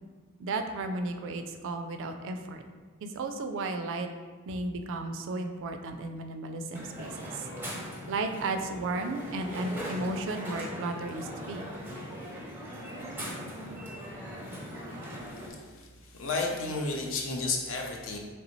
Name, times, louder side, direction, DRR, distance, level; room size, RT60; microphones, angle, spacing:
voice 1, 0.4-2.6 3.0-4.1 4.5-7.4 8.1-11.6, right 2 dB, 55° right, 6 dB, 0.3 m, -34 dB
Crowd, 6.7-15.5, equal, 10° right, 0.6 m, -40 dB
voice 2, 15.5-15.9 16.1-18.2, left 3 dB, 60° left, 1 dB, 0.6 m, -32 dB
4.0 x 3.3 x 3.0 m, 1.5 s
head